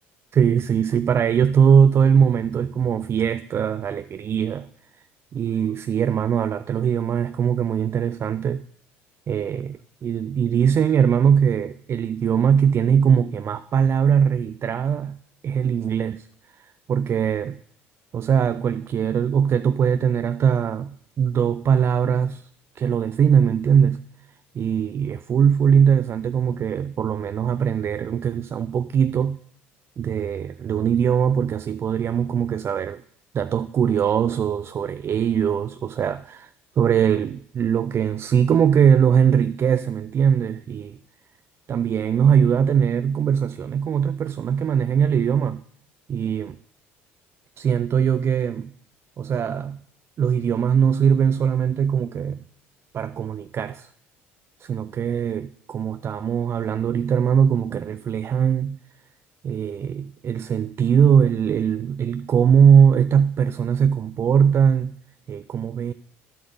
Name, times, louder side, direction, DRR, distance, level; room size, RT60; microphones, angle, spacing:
voice 1, 0.3-4.7 5.3-8.6 9.3-16.3 16.9-17.6 18.1-22.4 22.8-24.0 24.6-29.4 30.0-33.0 33.3-36.5 36.8-41.0 41.7-45.6 46.1-46.6 47.6-48.7 49.2-49.8 50.2-52.4 52.9-53.9 54.6-58.8 59.4-65.0 65.3-65.9, right 7 dB, 40° right, 0.4 m, -21 dB
11.0 x 7.8 x 3.9 m
hypercardioid pair, 65°, 6 cm